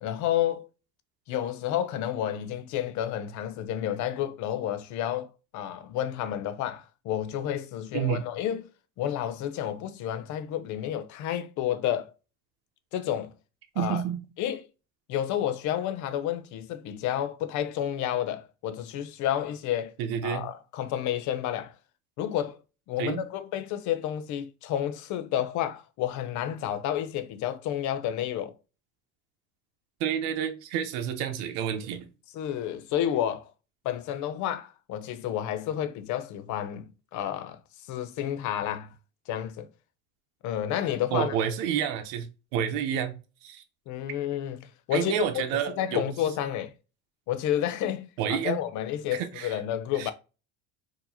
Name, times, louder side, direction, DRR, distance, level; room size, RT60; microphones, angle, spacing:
voice 1, 0.0-0.7 1.3-8.7 9.0-12.1 12.9-13.3 13.8-14.0 14.4-14.6 15.1-19.9 20.2-21.7 22.2-22.6 22.9-28.6 32.3-33.5 33.8-37.6 37.9-38.9 39.3-39.7 40.4-41.4 43.9-45.4 45.8-46.7 47.3-50.1, left 11 dB, 55° left, 0.6 m, -30 dB
voice 2, 13.7-14.2 20.0-20.4 23.0-23.2 30.0-32.1 41.1-42.3 42.5-43.1 43.4-43.6 44.9-46.0 48.2-48.6 49.1-49.5 50.0-50.1, right 9 dB, 75° right, 0.9 m, -29 dB
4.6 x 2.8 x 2.8 m
cardioid pair, 130°, 35 cm